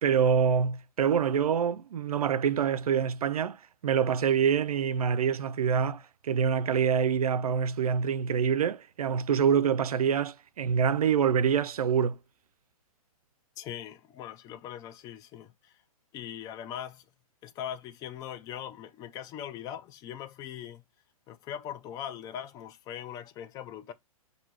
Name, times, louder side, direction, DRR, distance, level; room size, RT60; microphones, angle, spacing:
voice 1, 0.0-12.2, right 7 dB, 90° right, 0.4 m, -26 dB
voice 2, 13.6-15.8 16.1-17.1 17.4-20.8 21.3-23.9, left 10 dB, 20° left, 0.4 m, -40 dB
3.0 x 2.7 x 4.4 m
hypercardioid pair, 130°, 18 cm